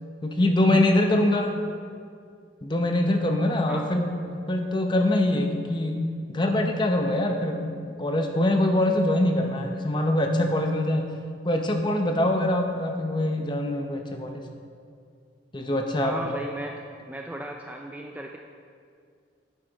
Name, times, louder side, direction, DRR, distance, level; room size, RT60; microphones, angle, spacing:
voice 1, 0.2-1.6 2.6-11.1 11.4-14.4 15.5-16.2, left 1 dB, 25° left, 4 dB, 0.7 m, -24 dB
voice 2, 16.0-18.4, right 1 dB, 10° right, 2 dB, 0.3 m, -36 dB
9.9 x 8.3 x 4.0 m, 2.3 s
head